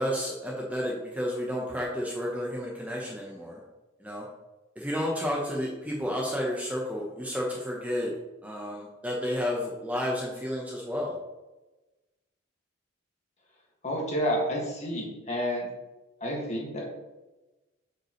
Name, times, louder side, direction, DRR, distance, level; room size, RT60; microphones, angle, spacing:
voice 1, 0.0-3.6 4.0-4.3 4.8-8.1 8.4-11.2, equal, 5° right, -3 dB, 0.9 m, -31 dB
voice 2, 13.8-15.7 16.2-16.9, equal, 35° left, -1 dB, 1.8 m, -30 dB
8.4 x 5.5 x 3.1 m, 1.1 s
head